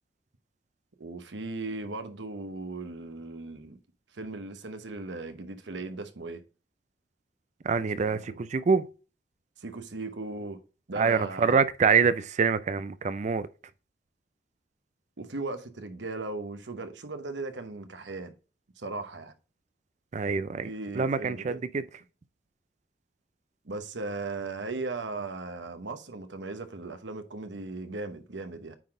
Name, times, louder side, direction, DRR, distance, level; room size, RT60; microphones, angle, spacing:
voice 1, 1.0-3.8 4.1-6.4 8.0-8.4 9.6-10.6 10.9-11.6 15.2-18.3 18.8-19.3 20.6-21.6 23.6-28.8, right 3 dB, 85° right, 1.0 m, -37 dB
voice 2, 7.6-8.9 11.0-13.5 20.1-20.7 20.9-21.8, right 5 dB, 40° right, 0.4 m, -25 dB
9.2 x 3.9 x 3.7 m
head